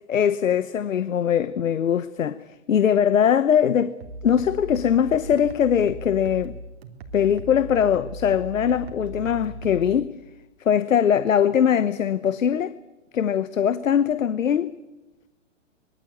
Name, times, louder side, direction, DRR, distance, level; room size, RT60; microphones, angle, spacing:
voice 1, 0.1-2.4 2.7-3.9 4.2-6.5 7.1-10.1 10.6-12.7 13.1-14.8, left 8 dB, 85° left, 1.2 m, -21 dB
sound 1, 4.0-10.0, right 1 dB, 50° right, 3.5 m, -38 dB
25.0 x 22.5 x 8.6 m
hypercardioid pair, 150°, 38 cm